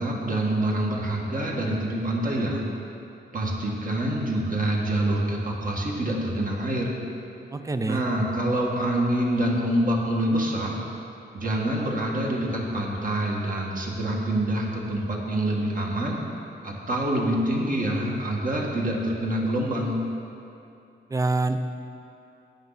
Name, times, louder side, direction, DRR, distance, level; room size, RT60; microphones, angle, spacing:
voice 1, 0.0-2.6 3.3-6.9 7.9-10.8 11.3-16.2 16.6-20.0, right 1 dB, 45° right, -2 dB, 1.8 m, -26 dB
voice 2, 7.5-8.0 21.1-21.6, right 3 dB, 15° right, 9 dB, 0.5 m, -25 dB
12.5 x 10.0 x 4.1 m, 2.7 s
wide cardioid pair, 145°, 19 cm